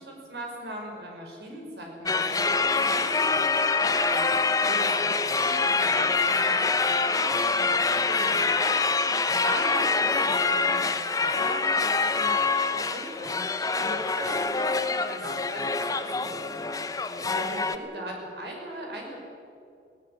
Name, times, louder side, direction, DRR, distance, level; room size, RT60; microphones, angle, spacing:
voice 1, 0.0-4.4 4.7-8.7 9.3-13.4 13.8-16.7 17.2-19.2, right 1 dB, 65° right, 0 dB, 5.9 m, -39 dB
sound 1, 2.1-17.8, left 4 dB, 20° left, 0.9 m, -25 dB
19.5 x 17.0 x 9.9 m, 2.5 s
head